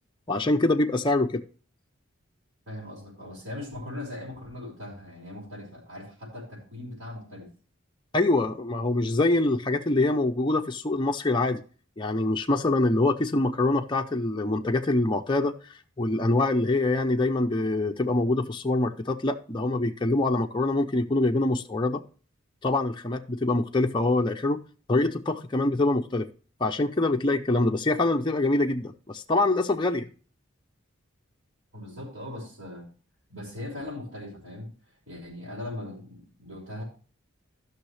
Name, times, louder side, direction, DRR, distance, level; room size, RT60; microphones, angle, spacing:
voice 1, 0.3-1.4 8.1-11.6 12.0-15.5 16.0-22.0 22.6-24.6 24.9-26.3 26.6-30.0, left 2 dB, 25° left, 0.6 m, -24 dB
voice 2, 2.7-7.5 31.7-32.9 33.3-34.7 35.1-36.8, left 1 dB, 80° right, 5.1 m, -39 dB
14.5 x 6.3 x 3.3 m
head